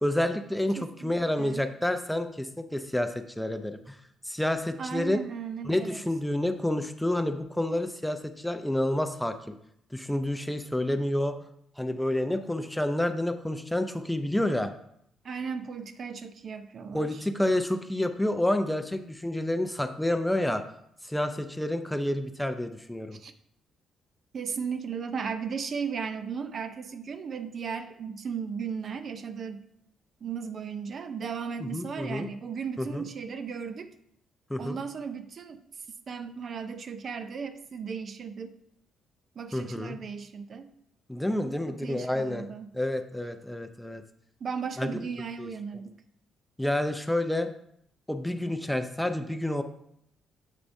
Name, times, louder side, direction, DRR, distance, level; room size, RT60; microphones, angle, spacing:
voice 1, 0.0-4.0 4.3-5.2 5.7-9.3 9.9-11.4 11.8-14.7 16.9-20.6 21.1-23.2 31.6-32.3 32.8-33.0 34.5-34.8 39.5-40.0 41.1-42.5 42.7-44.0 44.8-45.0 45.4-45.5 46.6-47.5 48.1-49.6, left 1 dB, 5° left, 8 dB, 0.5 m, -29 dB
voice 2, 0.8-1.7 4.8-6.0 15.2-17.2 23.1-23.3 24.3-29.6 30.2-33.9 34.6-35.6 36.1-38.6 39.4-40.7 41.7-42.7 44.4-46.0, right 6 dB, 50° right, 10 dB, 0.5 m, -36 dB
7.4 x 6.6 x 2.7 m, 0.72 s
cardioid pair, 90°, 0 cm